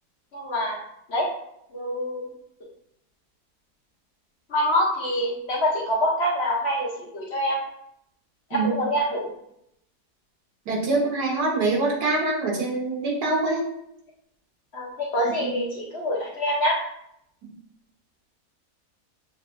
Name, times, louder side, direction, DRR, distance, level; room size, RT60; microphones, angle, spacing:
voice 1, 0.3-0.8 1.1-1.3 1.7-2.2 4.5-7.6 8.5-9.3 14.7-16.8, equal, 55° left, -2 dB, 0.8 m, -25 dB
voice 2, 10.7-13.6 15.4-15.5, right 3 dB, 85° right, -2 dB, 1.7 m, -24 dB
6.5 x 2.9 x 2.5 m, 0.76 s
omnidirectional pair, 1.7 m